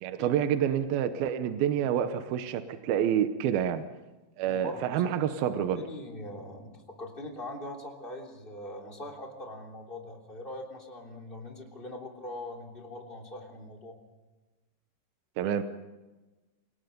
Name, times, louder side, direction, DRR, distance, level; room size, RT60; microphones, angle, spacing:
voice 1, 0.0-3.8 4.4-5.8 15.4-15.6, right 9 dB, 70° right, 10 dB, 2.4 m, -28 dB
voice 2, 4.5-5.3 5.6-13.9, left 1 dB, 15° left, 0 dB, 2.8 m, -42 dB
29.0 x 18.5 x 5.3 m, 1.1 s
omnidirectional pair, 5.2 m